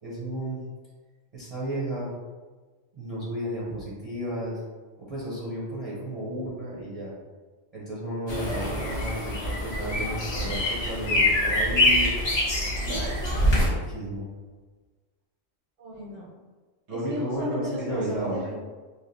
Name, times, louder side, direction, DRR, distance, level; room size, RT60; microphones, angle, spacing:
voice 1, 0.0-0.6 1.3-2.1 2.9-4.6 5.1-7.1 7.7-12.2 12.8-14.3 16.9-18.4, right 1 dB, 35° right, -8 dB, 0.6 m, -33 dB
sound 1, 8.3-13.7, left 1 dB, 30° left, 0.5 m, -25 dB
voice 2, 15.8-16.3 16.9-18.6, equal, 80° right, -6 dB, 1.6 m, -35 dB
3.2 x 2.5 x 2.6 m, 1.4 s
omnidirectional pair, 1.3 m